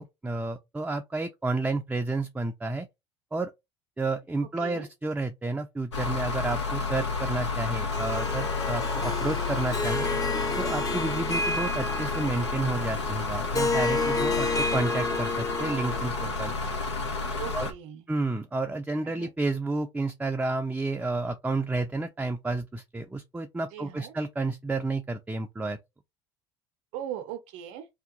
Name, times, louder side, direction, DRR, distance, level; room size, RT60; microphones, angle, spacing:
voice 1, 0.0-2.9 3.3-3.5 4.0-10.1 10.6-16.5 17.5-17.7 18.1-25.8, right 3 dB, 10° right, 0.4 m, -31 dB
voice 2, 4.6-4.9 17.4-18.1 19.0-19.3 23.7-24.1 26.9-27.9, right 10 dB, 60° right, 0.6 m, -39 dB
sound 1, 5.9-17.7, left 3 dB, 85° left, 0.7 m, -30 dB
Harp, 7.9-16.3, left 3 dB, 25° left, 0.7 m, -31 dB
2.8 x 2.4 x 3.8 m
hypercardioid pair, 65°, 14 cm